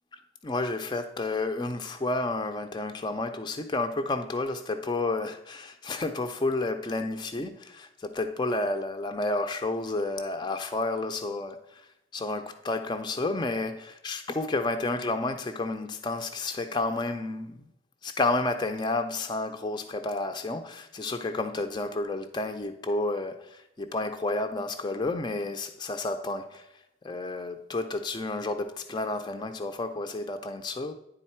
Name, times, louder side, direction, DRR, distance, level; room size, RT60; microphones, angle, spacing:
voice 1, 0.4-17.7 18.0-26.7 27.0-30.9, left 2 dB, 20° left, 0.4 m, -31 dB
10.0 x 3.9 x 4.3 m
head